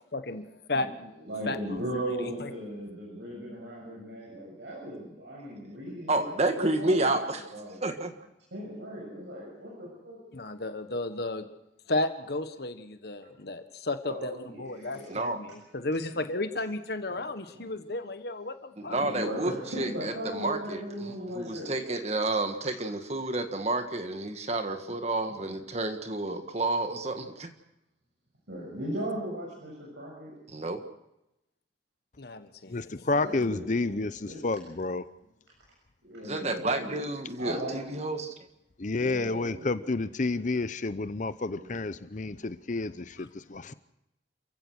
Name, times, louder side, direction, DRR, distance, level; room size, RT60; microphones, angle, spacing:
voice 1, 0.1-1.1 1.5-1.8 2.2-2.5 10.3-11.4 11.9-19.0 32.2-32.9, left 2 dB, 60° left, 9 dB, 1.4 m, -33 dB
voice 2, 1.2-6.3 6.5-7.8 8.5-10.2 14.0-15.2 17.1-17.2 17.5-17.7 18.9-21.8 25.3-25.5 28.5-30.3 33.1-34.4 36.0-37.0 37.4-38.0 38.9-39.7 41.5-41.9, right 1 dB, 85° right, -3 dB, 7.1 m, -38 dB
voice 3, 6.1-7.4 7.8-8.1 15.1-15.4 18.8-20.8 21.3-27.5 30.5-30.8 36.2-38.3, right 2 dB, 40° right, 7 dB, 1.5 m, -30 dB
voice 4, 32.7-35.0 38.8-43.7, left 3 dB, 45° left, 14 dB, 0.7 m, -30 dB
28.0 x 15.5 x 6.4 m, 0.88 s
head